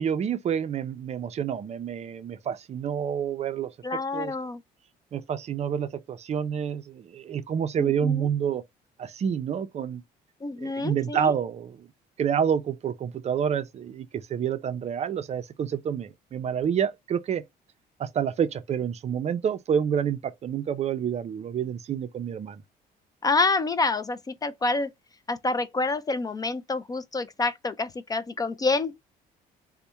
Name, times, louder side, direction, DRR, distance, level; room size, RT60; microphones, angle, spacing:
voice 1, 0.0-3.7 4.1-4.3 5.1-8.6 9.0-10.0 10.6-11.9 12.2-17.4 18.0-22.6, right 8 dB, 40° right, 0.4 m, -28 dB
voice 2, 3.8-4.6 7.8-8.3 10.4-11.3 23.2-24.9 25.3-28.9, left 3 dB, 20° left, 0.3 m, -27 dB
4.1 x 2.1 x 3.3 m
cardioid pair, 110°, 17 cm